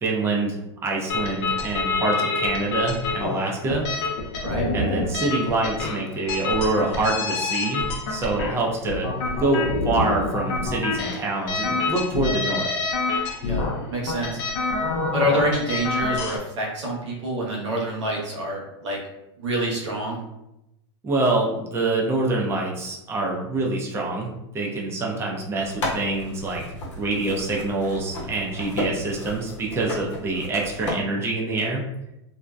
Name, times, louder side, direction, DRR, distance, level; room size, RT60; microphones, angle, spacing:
voice 1, 0.0-3.9 4.7-9.1 9.4-12.7 21.0-26.6 27.0-31.8, right 2 dB, 15° right, -2 dB, 0.5 m, -25 dB
sound 1, 1.1-16.4, left 3 dB, 65° left, 0.5 m, -27 dB
voice 2, 13.4-14.4 15.1-19.0 19.4-20.2, right 1 dB, 85° right, -2 dB, 0.8 m, -27 dB
sound 2, 25.6-30.9, left 1 dB, 90° left, 0.8 m, -33 dB
2.6 x 2.1 x 2.2 m, 0.88 s
hypercardioid pair, 120°, 15 cm